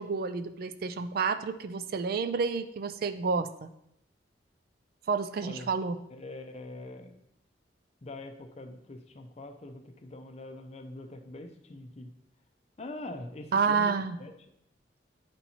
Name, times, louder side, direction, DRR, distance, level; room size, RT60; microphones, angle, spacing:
voice 1, 0.0-3.7 5.1-6.0 13.5-14.2, right 5 dB, 50° right, 10 dB, 0.4 m, -29 dB
voice 2, 5.4-5.8 6.1-7.2 8.0-12.1 12.8-14.3, left 2 dB, 35° left, 6 dB, 0.5 m, -43 dB
9.5 x 4.3 x 2.8 m, 0.78 s
head